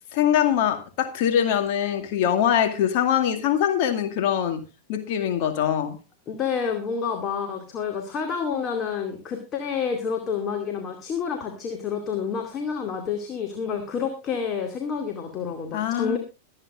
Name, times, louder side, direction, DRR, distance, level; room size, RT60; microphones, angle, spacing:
voice 1, 0.1-6.0 15.7-16.2, left 9 dB, 45° left, 2.2 m, -23 dB
voice 2, 6.3-16.2, left 6 dB, 30° left, 2.3 m, -29 dB
23.0 x 8.9 x 2.5 m
figure-of-eight pair, 90°, 0 cm